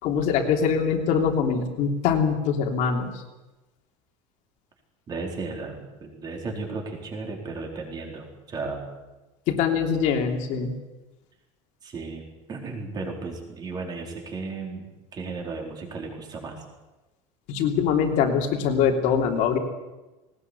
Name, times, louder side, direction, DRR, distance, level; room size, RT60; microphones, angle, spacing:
voice 1, 0.0-3.2 9.5-10.7 17.5-19.6, left 6 dB, 50° left, 3 dB, 3.1 m, -23 dB
voice 2, 5.1-9.0 11.8-12.2 12.5-16.6, right 3 dB, 25° right, 1 dB, 4.4 m, -35 dB
19.5 x 19.5 x 8.3 m, 1.1 s
cardioid pair, 170°, 16 cm